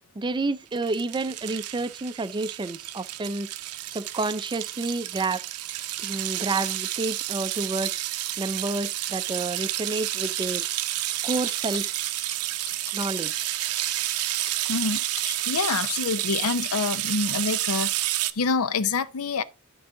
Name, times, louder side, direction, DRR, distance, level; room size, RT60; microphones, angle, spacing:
voice 1, 0.2-3.5 3.9-5.4 6.0-8.0 8.4-10.7 11.2-11.9 12.9-13.6, right 3 dB, 20° right, 0.4 m, -29 dB
sound 1, 0.7-18.3, right 15 dB, 80° right, 0.6 m, -30 dB
voice 2, 14.6-19.4, left 4 dB, 70° left, 0.6 m, -27 dB
11.5 x 4.8 x 3.8 m
head